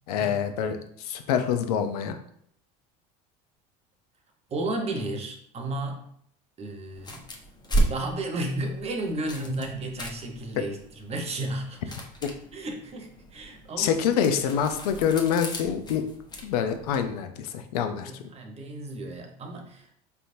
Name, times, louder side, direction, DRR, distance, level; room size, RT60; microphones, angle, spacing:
voice 1, 0.1-2.2 13.8-16.0 16.4-18.1, left 8 dB, 85° left, 7 dB, 0.6 m, -26 dB
voice 2, 4.5-6.1 6.6-7.2 7.9-11.9 12.5-13.9 17.8-20.0, right 2 dB, 35° right, 3 dB, 1.0 m, -33 dB
sound 1, 6.9-17.1, right 1 dB, 20° left, 0.9 m, -34 dB
4.4 x 3.4 x 2.7 m, 0.66 s
supercardioid pair, 95°, 19 cm